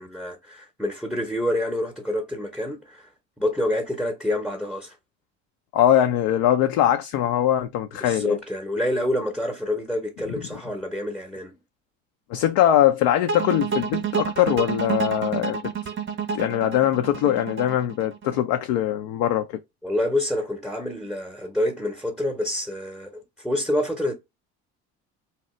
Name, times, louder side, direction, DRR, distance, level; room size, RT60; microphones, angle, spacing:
voice 1, 0.0-3.1 3.4-5.0 8.0-11.6 19.8-24.1, left 1 dB, ahead, 0.7 m, -27 dB
voice 2, 5.7-8.4 12.3-15.6 16.3-19.6, left 11 dB, 65° left, 0.5 m, -21 dB
sound 1, 13.3-18.4, right 6 dB, 30° right, 0.5 m, -28 dB
2.8 x 2.1 x 3.0 m
hypercardioid pair, 65°, 38 cm